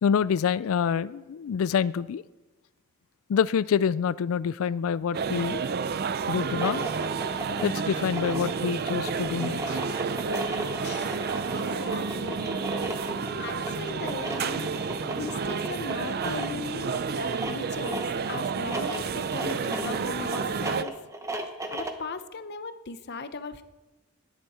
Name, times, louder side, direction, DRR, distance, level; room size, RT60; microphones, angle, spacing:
voice 1, 0.0-2.2 3.3-5.6 6.3-6.8 7.6-9.8 10.8-11.1, left 7 dB, 65° left, 19 dB, 0.3 m, -27 dB
sound 1, 5.1-20.8, right 5 dB, 45° right, 0.5 m, -31 dB
sound 2, 6.4-22.1, right 1 dB, 15° right, 1.0 m, -36 dB
voice 2, 11.5-12.6 13.4-20.9 21.7-23.6, left 4 dB, 50° left, 11 dB, 0.8 m, -38 dB
19.5 x 10.5 x 4.3 m, 1.1 s
head